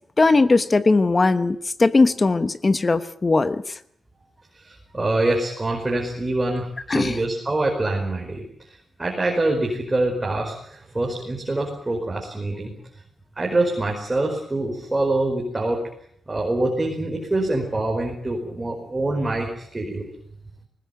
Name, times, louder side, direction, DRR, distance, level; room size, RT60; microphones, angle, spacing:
voice 1, 0.2-3.8 6.9-7.2, left 3 dB, 30° left, 12 dB, 1.1 m, -19 dB
voice 2, 4.5-12.7 13.4-15.8 16.3-20.1, right 2 dB, 20° right, 0 dB, 5.0 m, -25 dB
21.0 x 20.0 x 9.2 m, 0.67 s
wide cardioid pair, 115°, 0 cm